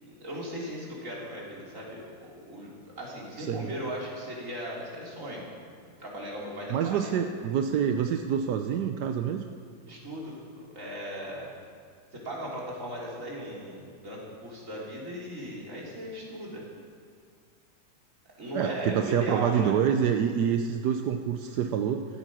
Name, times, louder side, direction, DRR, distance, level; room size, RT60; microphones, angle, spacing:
voice 1, 0.0-2.7 3.0-5.4 6.0-7.1 9.9-11.5 12.1-16.6 18.4-19.7, equal, 50° right, -4 dB, 3.9 m, -37 dB
voice 2, 3.4-3.7 6.7-9.4 18.5-22.1, right 8 dB, 85° right, 6 dB, 1.3 m, -27 dB
14.5 x 14.0 x 6.3 m, 2.1 s
omnidirectional pair, 1.7 m